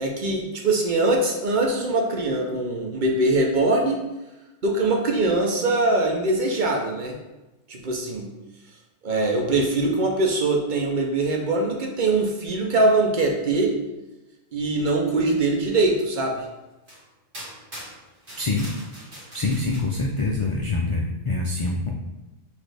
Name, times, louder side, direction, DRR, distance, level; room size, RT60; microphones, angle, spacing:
voice 1, 0.0-4.0 4.6-7.2 7.7-8.3 9.0-13.7 14.5-16.5, right 2 dB, 50° right, 0 dB, 0.7 m, -22 dB
sound 1, 16.2-16.3 16.9-17.0 17.3-19.8, right 1 dB, 30° right, 1.3 m, -42 dB
voice 2, 18.4-18.7 19.3-21.9, left 3 dB, 55° left, 0 dB, 0.3 m, -25 dB
6.1 x 2.6 x 3.3 m, 1.0 s
omnidirectional pair, 1.1 m